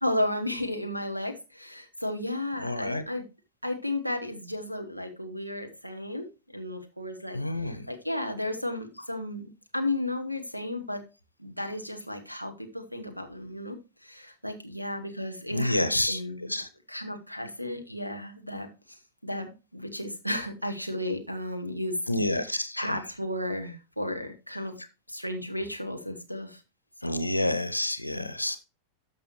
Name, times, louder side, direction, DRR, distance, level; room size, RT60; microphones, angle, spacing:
voice 1, 0.0-3.2 3.6-6.3 6.5-11.0 11.4-13.7 14.0-16.6 16.9-24.8 25.1-26.6 27.0-27.3, left 1 dB, 90° right, 1.4 m, -34 dB
voice 2, 2.6-3.0 7.3-7.9 15.5-16.2 16.5-16.7 22.1-22.9 27.0-28.6, left 1 dB, 85° left, 0.6 m, -28 dB
13.0 x 5.5 x 3.1 m
figure-of-eight pair, 90°, 0 cm